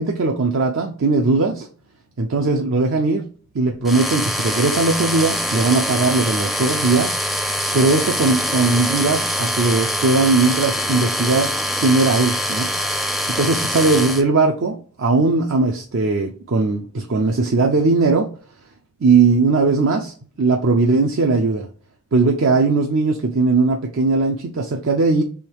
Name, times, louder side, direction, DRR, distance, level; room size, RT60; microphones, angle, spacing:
voice 1, 0.0-1.7 2.2-3.2 3.5-7.2 7.7-11.5 11.8-12.7 13.3-18.3 19.0-21.7 22.1-25.2, right 3 dB, 65° right, 2 dB, 0.5 m, -19 dB
sound 1, 3.8-14.2, equal, ahead, 0.4 m, -24 dB
3.5 x 3.1 x 4.6 m, 0.43 s
head